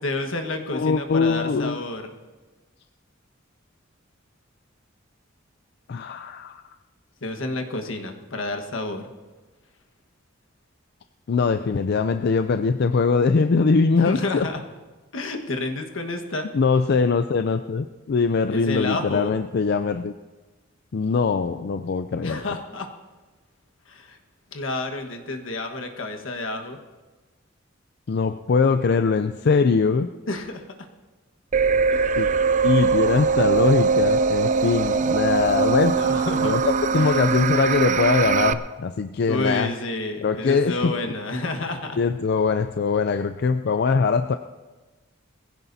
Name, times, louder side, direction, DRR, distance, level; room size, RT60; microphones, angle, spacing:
voice 1, 0.0-2.1 7.2-9.0 13.9-14.6 15.1-16.5 18.5-19.4 22.2-22.9 23.9-24.2 24.5-26.8 30.3-30.6 31.9-32.3 35.9-36.6 36.9-37.2 37.9-38.0 39.3-42.0, left 2 dB, 80° left, 4 dB, 1.4 m, -30 dB
voice 2, 0.7-1.8 5.9-6.6 11.3-14.5 16.5-20.1 20.9-22.4 28.1-30.1 32.2-32.3 32.6-36.0 36.4-39.7 40.2-41.0 42.0-44.4, left 4 dB, 55° left, 9 dB, 0.4 m, -22 dB
sound 1, 31.5-38.5, right 5 dB, 40° right, 0.4 m, -21 dB
21.0 x 15.5 x 2.7 m, 1.3 s
head